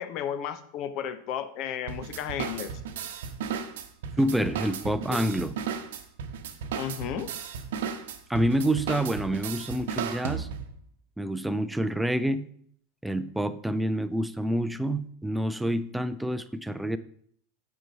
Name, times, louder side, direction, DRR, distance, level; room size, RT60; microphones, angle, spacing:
voice 1, 0.0-2.7 5.1-5.2 6.7-7.3, left 9 dB, 45° left, 12 dB, 0.9 m, -33 dB
sound 1, 1.9-10.8, right 7 dB, 65° right, 0.9 m, -35 dB
voice 2, 4.2-5.6 8.3-10.5 11.2-12.5 13.0-17.0, right 1 dB, 5° right, 12 dB, 0.6 m, -27 dB
9.1 x 4.5 x 5.7 m, 0.62 s
figure-of-eight pair, 85°, 0 cm